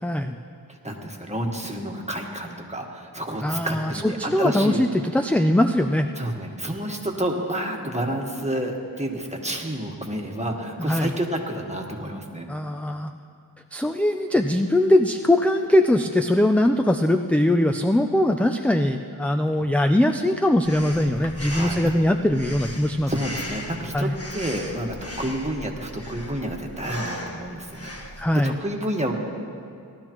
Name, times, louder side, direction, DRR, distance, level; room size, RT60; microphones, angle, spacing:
voice 1, 0.0-0.4 3.4-6.1 10.8-11.1 12.5-13.1 13.7-23.1 23.9-24.1 28.2-28.6, left 1 dB, 5° left, 5 dB, 0.3 m, -21 dB
voice 2, 0.8-4.8 6.2-12.4 19.6-19.9 21.5-21.9 23.1-24.1 24.3-27.9 28.4-29.1, right 1 dB, 15° right, 1 dB, 1.3 m, -29 dB
Breathing, 20.6-28.3, left 1 dB, 35° left, 1.3 m, -37 dB
18.5 x 12.0 x 3.0 m, 2.5 s
wide cardioid pair, 45°, 40 cm